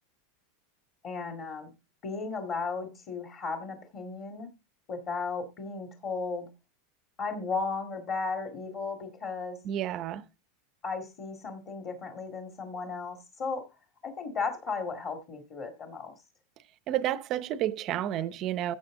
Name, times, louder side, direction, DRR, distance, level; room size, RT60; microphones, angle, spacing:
voice 1, 1.0-1.7 2.0-4.5 4.9-6.5 7.2-9.6 10.8-13.6 14.0-16.1, left 4 dB, 30° left, 2.1 m, -35 dB
voice 2, 9.6-10.2 16.9-18.8, right 12 dB, 30° right, 0.6 m, -30 dB
15.5 x 6.9 x 3.7 m
supercardioid pair, 175°, 0 cm